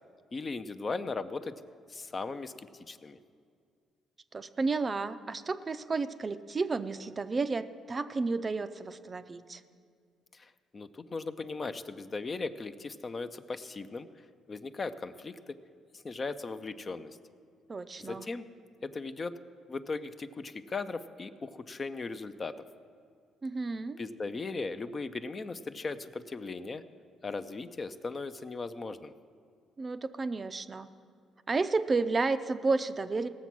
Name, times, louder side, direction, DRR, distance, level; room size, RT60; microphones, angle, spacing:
voice 1, 0.3-1.5 1.9-3.2 10.3-14.1 14.5-15.4 16.0-17.2 18.0-18.4 18.8-19.4 19.7-22.5 24.0-26.8 27.2-29.1, left 3 dB, 30° left, 11 dB, 0.5 m, -38 dB
voice 2, 4.3-9.6 17.7-18.3 23.4-24.0 29.8-30.9 31.5-33.3, right 3 dB, 30° right, 11 dB, 0.5 m, -32 dB
17.5 x 7.2 x 6.0 m, 2.2 s
cardioid pair, 115°, 0 cm